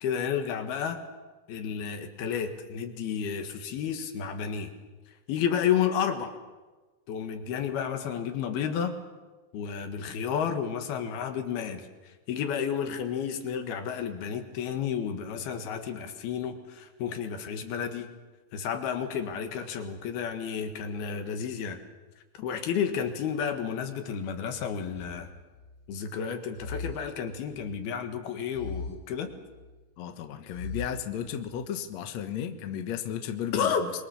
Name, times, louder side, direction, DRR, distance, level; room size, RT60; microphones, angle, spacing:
voice 1, 0.0-1.0 1.5-4.7 5.1-6.4 7.1-9.0 9.5-18.1 18.5-21.8 22.3-25.3 25.9-29.3 33.5-33.9, left 7 dB, 80° left, 6 dB, 3.6 m, -31 dB
sound 1, 24.9-25.9 26.6-27.9 28.5-29.8 30.5-31.7, left 3 dB, 30° left, 3.9 m, -41 dB
voice 2, 30.0-33.9, left 9 dB, 60° left, 7 dB, 2.1 m, -34 dB
25.5 x 22.5 x 7.1 m, 1.2 s
omnidirectional pair, 4.4 m